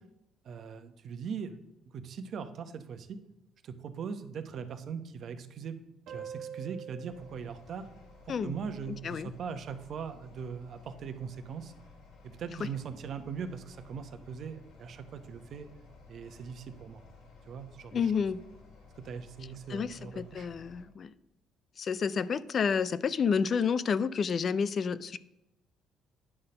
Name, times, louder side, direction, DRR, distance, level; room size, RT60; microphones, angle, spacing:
voice 1, 0.4-1.6 1.8-3.2 3.6-5.8 6.1-7.9 8.2-11.7 12.2-15.7 16.1-17.0 17.4-18.1 19.0-20.5, right 6 dB, 60° right, 9 dB, 0.9 m, -40 dB
sound 1, 6.1-9.2, right 7 dB, 75° right, 1.2 m, -46 dB
sound 2, 7.1-20.8, left 4 dB, 70° left, 2.2 m, -56 dB
voice 2, 8.9-9.3 12.6-12.7 17.9-18.4 19.7-21.1 21.8-25.2, left 6 dB, 50° left, 17 dB, 0.4 m, -30 dB
9.9 x 4.1 x 6.5 m, 0.88 s
supercardioid pair, 75°, 0 cm